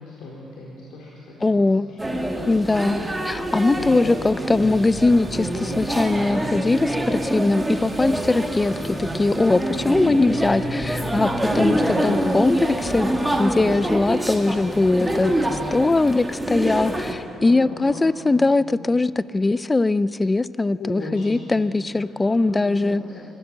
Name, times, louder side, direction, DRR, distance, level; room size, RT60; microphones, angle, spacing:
voice 1, 0.0-2.0 3.7-4.0 7.8-8.2 11.0-12.1 15.0-15.3 17.3-18.6 20.8-23.3, left 2 dB, 80° left, -4 dB, 4.1 m, -37 dB
voice 2, 1.4-1.9 2.5-11.3 11.6-11.8 12.0-13.1 13.4-15.3 15.7-23.0, left 2 dB, 15° left, 17 dB, 0.4 m, -21 dB
sound 1, 2.0-17.1, right 1 dB, 10° right, 1.9 m, -26 dB
24.5 x 15.5 x 7.5 m, 2.8 s
cardioid pair, 125°, 0 cm